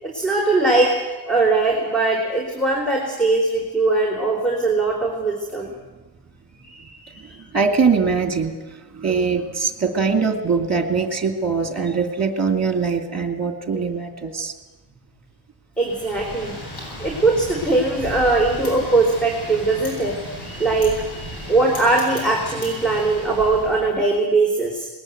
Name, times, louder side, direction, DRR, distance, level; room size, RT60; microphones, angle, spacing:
voice 1, 0.0-5.7 6.6-7.4 15.8-16.6 17.0-20.2 20.4-24.9, right 3 dB, ahead, -1 dB, 3.8 m, -21 dB
voice 2, 7.5-8.6 8.9-14.5, right 5 dB, 35° right, 5 dB, 2.5 m, -22 dB
Wind, 15.8-23.9, equal, 60° left, 7.8 m, -35 dB
20.5 x 19.5 x 8.0 m, 1.2 s
wide cardioid pair, 110°, 43 cm